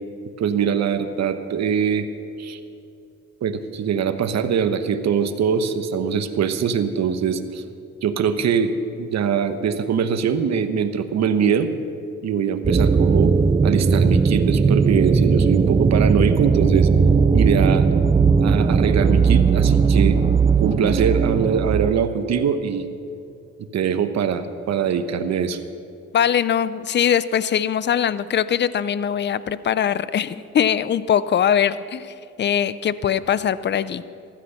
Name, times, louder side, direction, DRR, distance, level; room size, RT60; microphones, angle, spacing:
voice 1, 0.4-2.1 2.4-2.6 3.4-7.6 8.0-11.7 12.2-13.3 13.6-16.9 17.3-17.8 18.4-20.2 20.6-22.9 23.7-25.6, right 7 dB, 60° right, 9 dB, 1.1 m, -22 dB
sound 1, 12.6-21.9, right 5 dB, 20° right, 0.5 m, -17 dB
voice 2, 26.1-34.0, left 9 dB, 35° left, 16 dB, 0.5 m, -21 dB
15.0 x 12.5 x 5.8 m, 2.6 s
cardioid pair, 90°, 30 cm